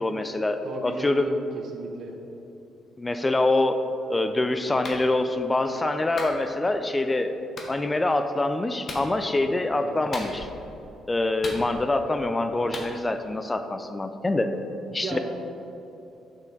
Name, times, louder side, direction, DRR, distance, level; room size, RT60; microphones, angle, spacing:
voice 1, 0.0-1.3 3.0-3.8 4.1-7.3 7.7-10.5 11.1-14.5 14.9-15.2, left 2 dB, 20° left, 8 dB, 0.4 m, -25 dB
voice 2, 0.6-1.4 1.7-2.1 9.8-9.9 15.0-15.2, right 3 dB, 65° right, 2 dB, 1.0 m, -35 dB
Clapping, 4.8-5.0 6.2-6.4 7.6-7.7 8.9-9.1 10.1-10.6 11.4-12.0 12.7-12.9, left 2 dB, 45° left, 1.2 m, -36 dB
6.9 x 5.7 x 3.9 m, 2.9 s
cardioid pair, 90°, 0 cm